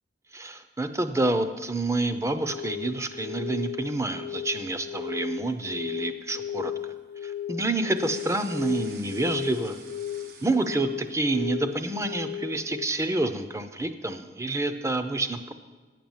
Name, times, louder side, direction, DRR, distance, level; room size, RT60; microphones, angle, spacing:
voice 1, 0.3-6.7 7.2-9.8 10.4-15.5, right 2 dB, 15° right, 9 dB, 0.6 m, -28 dB
sound 1, 2.4-12.9, left 10 dB, 85° left, 0.3 m, -36 dB
sound 2, 7.9-11.1 11.5-12.2, right 5 dB, 55° right, 1.2 m, -49 dB
9.7 x 7.6 x 7.2 m, 1.4 s
head